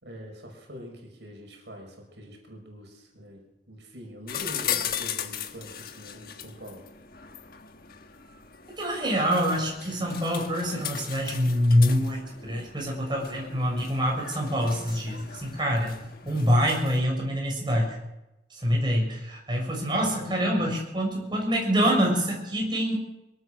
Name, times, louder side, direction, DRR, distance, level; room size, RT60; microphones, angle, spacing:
voice 1, 0.0-3.4 3.7-6.8 19.9-20.7, equal, 75° right, 2 dB, 6.0 m, -44 dB
sound 1, 4.3-17.0, left 9 dB, 55° left, 1.4 m, -38 dB
voice 2, 8.8-16.0 16.2-18.0 18.5-22.9, equal, 25° right, 0 dB, 6.5 m, -25 dB
23.0 x 18.0 x 6.5 m, 0.93 s
head